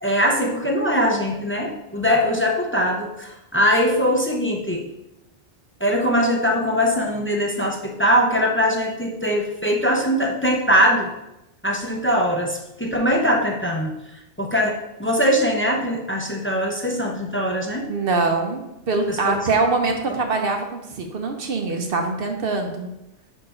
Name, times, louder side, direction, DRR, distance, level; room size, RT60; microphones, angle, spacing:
voice 1, 0.0-4.9 5.8-11.1 11.6-14.0 14.4-17.9 19.1-19.4, equal, 15° left, 0 dB, 0.4 m, -21 dB
voice 2, 17.8-18.6 18.9-22.9, right 3 dB, 55° right, 4 dB, 0.8 m, -23 dB
5.1 x 4.5 x 4.3 m, 0.90 s
omnidirectional pair, 1.2 m